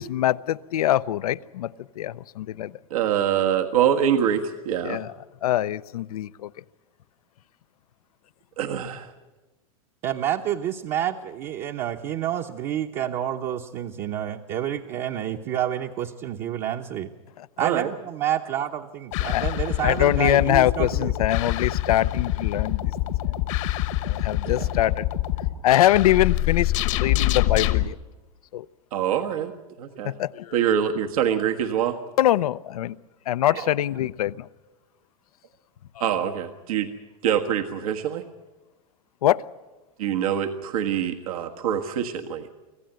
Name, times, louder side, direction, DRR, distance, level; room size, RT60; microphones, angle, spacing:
voice 1, 0.0-1.7 2.0-2.7 4.8-5.1 5.4-6.5 17.4-17.5 19.3-19.5 19.8-22.9 23.2-23.3 24.0-25.1 25.6-28.0 28.5-28.7 30.0-30.5 32.2-33.0 33.3-34.5 39.2-39.4, left 13 dB, 90° left, 0.6 m, -23 dB
voice 2, 2.9-5.0 8.6-9.1 17.6-17.9 28.9-29.5 29.8-30.1 30.5-32.0 36.0-36.9 37.2-38.2 40.0-42.5, right 9 dB, 75° right, 1.5 m, -24 dB
voice 3, 10.0-17.1 17.6-21.2 24.4-24.7 33.5-33.7, right 10 dB, 40° right, 1.0 m, -29 dB
sound 1, 19.1-27.8, left 14 dB, 60° left, 1.2 m, -25 dB
25.0 x 15.5 x 9.1 m
supercardioid pair, 135°, 19 cm